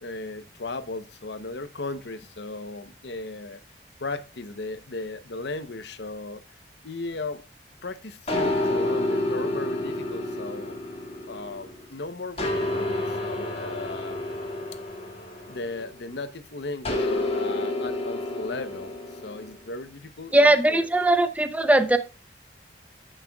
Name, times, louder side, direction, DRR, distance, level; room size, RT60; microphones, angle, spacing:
voice 1, 0.0-3.6 4.0-6.6 6.8-7.5 7.8-10.8 11.3-14.2 15.5-20.8, left 3 dB, 70° left, 0.8 m, -36 dB
sound 1, 8.3-11.8 12.4-16.1 16.9-19.5, left 1 dB, 35° left, 2.0 m, -29 dB
voice 2, 20.3-22.0, right 1 dB, 10° right, 0.6 m, -19 dB
14.5 x 6.6 x 2.3 m
head